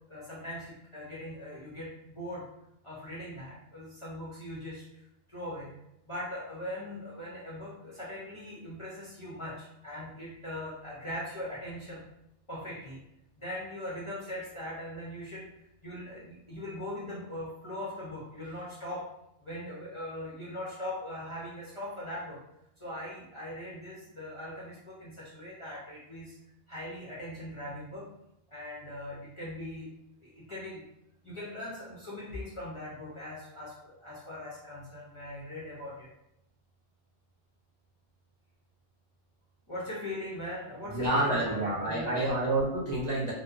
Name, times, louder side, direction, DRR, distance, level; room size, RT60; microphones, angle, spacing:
voice 1, 0.0-2.5 2.8-4.8 5.3-5.8 6.1-12.0 12.5-13.0 13.4-15.5 15.8-19.1 19.4-22.4 22.8-26.3 26.7-28.1 28.5-29.9 30.2-30.9 31.2-36.1 39.7-42.4, left 1 dB, 35° left, -8 dB, 0.5 m, -40 dB
voice 2, 40.9-43.3, right 2 dB, 45° right, -7 dB, 0.7 m, -28 dB
2.6 x 2.1 x 2.4 m, 0.83 s
omnidirectional pair, 1.2 m